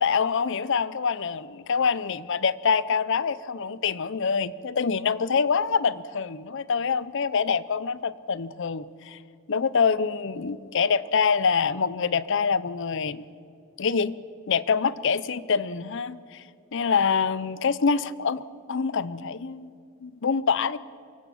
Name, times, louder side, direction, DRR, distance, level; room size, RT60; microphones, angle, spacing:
voice 1, 0.0-9.2 9.5-13.2 13.8-14.1 14.5-16.4 16.7-18.4 18.7-19.7 20.0-20.8, left 5 dB, 60° left, 18 dB, 0.6 m, -25 dB
23.5 x 16.0 x 7.1 m, 2.4 s
head